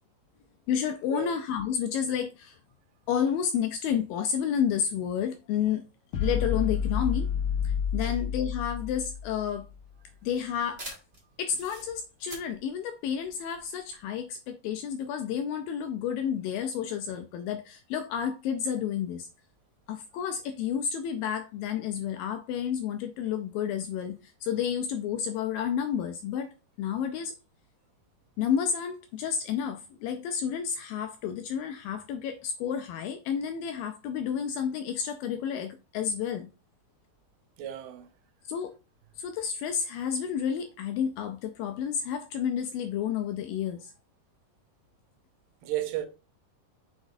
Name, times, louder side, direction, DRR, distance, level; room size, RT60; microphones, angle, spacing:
voice 1, 0.7-2.6 3.1-5.8 6.2-7.3 7.6-9.7 10.2-10.8 11.4-19.3 19.9-26.5 26.8-27.3 28.4-36.5 38.5-38.7 39.2-43.9, left 8 dB, 80° left, 2.1 m, -30 dB
sound 1, 6.1-9.6, left 7 dB, 60° left, 2.0 m, -29 dB
sound 2, 9.0-14.0, right 1 dB, 25° right, 1.3 m, -47 dB
voice 2, 37.6-38.1 45.6-46.1, right 12 dB, 80° right, 2.7 m, -33 dB
6.1 x 6.1 x 2.6 m
omnidirectional pair, 4.7 m